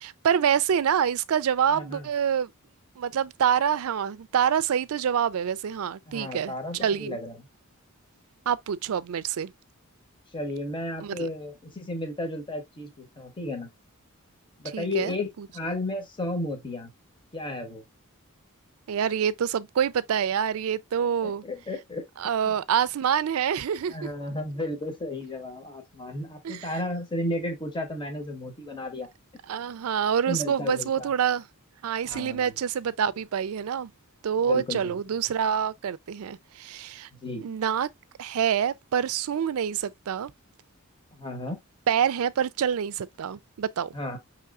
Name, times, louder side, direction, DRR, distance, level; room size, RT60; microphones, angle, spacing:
voice 1, 0.0-2.5 3.0-7.2 8.5-9.5 11.0-11.3 14.7-15.5 18.9-21.4 22.2-24.1 26.4-26.7 29.5-31.5 31.8-33.9 34.2-37.1 37.4-37.9 38.2-40.3 41.9-43.9, right 8 dB, 65° right, 0.4 m, -26 dB
voice 2, 1.7-2.1 6.1-7.4 10.3-13.7 14.6-16.9 17.3-17.8 21.2-22.1 22.4-22.5 23.9-29.1 30.3-31.1 32.1-32.5 34.5-35.0 37.1-37.5 41.2-41.6 43.9-44.2, left 1 dB, 20° left, 1.0 m, -33 dB
5.8 x 3.1 x 2.3 m
head